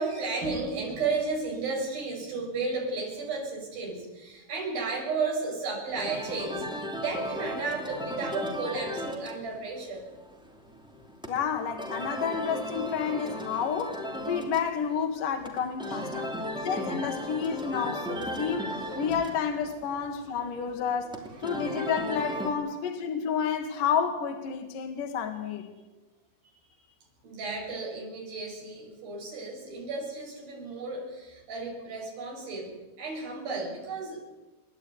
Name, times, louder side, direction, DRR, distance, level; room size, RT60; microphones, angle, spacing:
voice 1, 0.0-10.1 13.5-13.6 15.9-16.3 18.6-19.2 19.7-19.9 21.3-21.4 21.7-21.8 27.2-34.2, right 3 dB, 70° right, -2 dB, 8.0 m, -34 dB
sound 1, 5.9-22.5, equal, ahead, 2.4 m, -36 dB
voice 2, 11.3-14.0 14.2-16.3 16.6-25.7, left 7 dB, 65° left, 4 dB, 3.0 m, -30 dB
28.5 x 12.0 x 9.7 m, 1.2 s
omnidirectional pair, 4.3 m